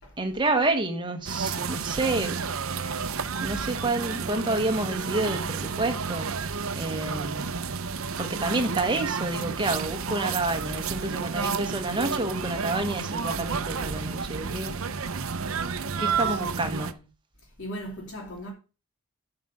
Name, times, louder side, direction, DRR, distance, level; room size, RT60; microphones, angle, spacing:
voice 1, 0.2-2.5 3.4-6.5 6.7-7.5 8.2-14.8 16.0-17.1, right 2 dB, 20° right, 1.3 m, -29 dB
sound 1, 1.3-16.9, right 5 dB, 65° right, 0.7 m, -31 dB
voice 2, 16.3-16.6 17.6-18.5, equal, 60° left, 2.8 m, -38 dB
9.2 x 5.0 x 6.1 m
head